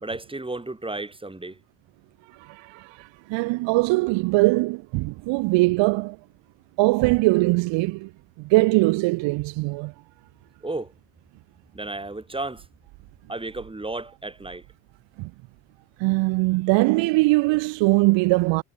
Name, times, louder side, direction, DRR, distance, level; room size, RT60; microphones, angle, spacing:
voice 1, 0.0-1.6 10.6-10.9 11.7-12.7 13.3-14.7, right 2 dB, 10° right, 2.2 m, -33 dB
voice 2, 2.4-6.2 6.8-8.1 8.4-9.9 15.2-15.3 16.0-18.6, right 23 dB, 75° right, 0.6 m, -21 dB
supercardioid pair, 65°, 45 cm